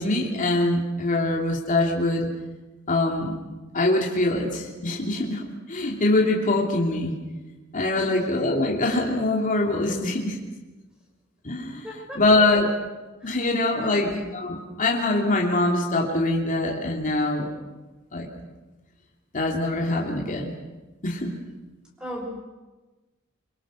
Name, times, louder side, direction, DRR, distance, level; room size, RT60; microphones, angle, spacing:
voice 1, 0.0-2.3 2.9-3.4 3.7-7.2 7.7-10.4 11.4-11.8 12.1-12.7 13.2-17.5 18.1-18.3 19.3-20.5 21.0-21.3, left 2 dB, 40° left, -1 dB, 3.0 m, -23 dB
voice 2, 11.8-12.2 13.2-13.4 13.7-14.0 22.0-22.3, equal, 5° right, 0 dB, 6.5 m, -37 dB
25.5 x 22.5 x 6.4 m, 1.2 s
head